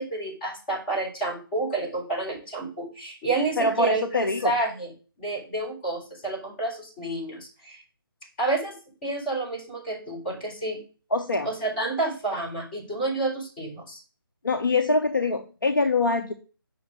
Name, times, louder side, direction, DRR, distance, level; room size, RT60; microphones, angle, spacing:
voice 1, 0.0-4.0 4.4-4.9 5.2-7.8 8.4-8.7 9.0-10.8 11.4-14.0, right 2 dB, 25° left, -1 dB, 4.4 m, -29 dB
voice 2, 3.6-4.5 11.1-11.5 14.4-16.3, left 3 dB, 60° left, 5 dB, 1.0 m, -24 dB
6.8 x 5.3 x 6.3 m, 0.35 s
figure-of-eight pair, 150°, 12 cm